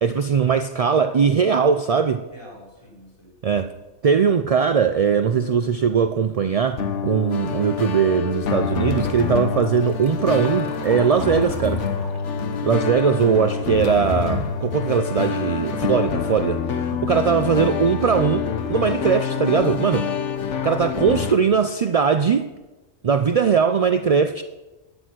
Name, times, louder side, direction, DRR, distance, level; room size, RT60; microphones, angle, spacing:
voice 1, 0.0-2.2 3.4-3.7 4.0-11.8 12.6-20.1 20.6-22.5 23.0-24.4, right 6 dB, 60° right, 9 dB, 0.4 m, -20 dB
voice 2, 2.2-3.3 23.0-23.6, equal, 25° left, -4 dB, 4.5 m, -45 dB
sound 1, 6.8-21.4, left 6 dB, 75° left, 1.3 m, -26 dB
Liquid, 9.4-14.5 14.9-15.0 15.9-16.0 16.4-16.7 17.3-17.4 17.9-18.0 18.4-18.7, right 2 dB, 35° right, 2.3 m, -44 dB
12.5 x 9.8 x 6.2 m, 1.1 s
omnidirectional pair, 1.2 m